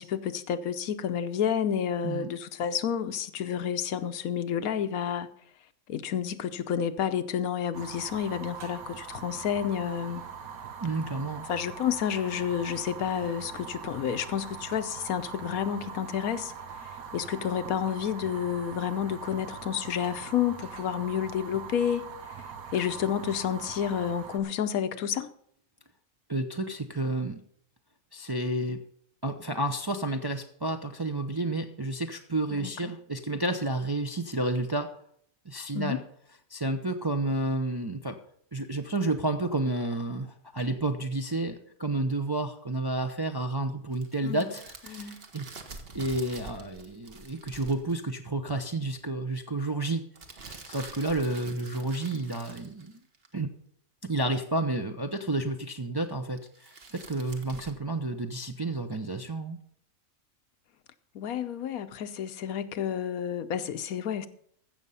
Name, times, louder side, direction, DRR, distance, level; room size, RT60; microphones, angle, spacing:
voice 1, 0.0-5.3 5.9-10.2 11.5-16.5 17.1-22.0 22.7-25.3 32.5-32.9 35.7-36.0 44.2-44.5 44.9-45.2 61.1-64.3, left 8 dB, 85° left, 1.2 m, -30 dB
Fire, 7.7-24.4, right 6 dB, 85° right, 1.5 m, -42 dB
voice 2, 10.8-11.5 26.3-27.4 28.1-28.8 29.2-34.9 35.4-36.0 36.5-38.2 38.5-45.5 45.9-50.0 50.4-53.0 53.3-53.5 54.0-59.6, right 2 dB, 30° right, 0.4 m, -31 dB
sound 1, 43.9-48.0 50.2-53.3 56.4-57.7, right 3 dB, 45° right, 1.3 m, -47 dB
15.0 x 6.5 x 5.5 m
omnidirectional pair, 1.5 m